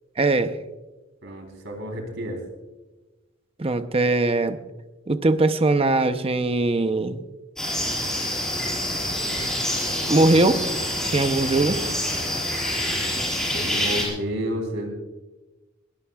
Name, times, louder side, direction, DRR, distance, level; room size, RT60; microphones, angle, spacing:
voice 1, 0.2-0.5 3.6-4.6 5.1-7.2 10.1-10.8 11.1-11.8, right 2 dB, 30° right, 10 dB, 0.7 m, -21 dB
voice 2, 1.2-2.4 13.5-14.9, equal, 65° right, 3 dB, 3.6 m, -30 dB
sound 1, 7.6-14.0, left 1 dB, 5° left, 5.1 m, -26 dB
21.5 x 17.0 x 2.4 m, 1.1 s
head